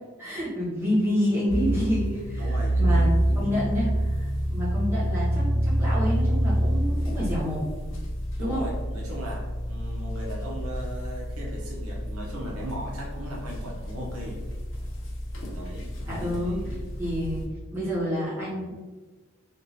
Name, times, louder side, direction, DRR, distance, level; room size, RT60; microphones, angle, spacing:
voice 1, 0.2-3.1 3.3-7.7 8.4-8.6 16.1-16.7 17.0-17.4 17.7-18.7, equal, 10° right, -10 dB, 1.1 m, -28 dB
sound 1, 1.5-17.4, right 1 dB, 60° left, 0.6 m, -28 dB
voice 2, 2.3-4.0 8.3-14.4 15.5-15.9 16.2-16.9, equal, 85° right, -3 dB, 0.9 m, -38 dB
3.6 x 2.5 x 2.8 m, 1.3 s
head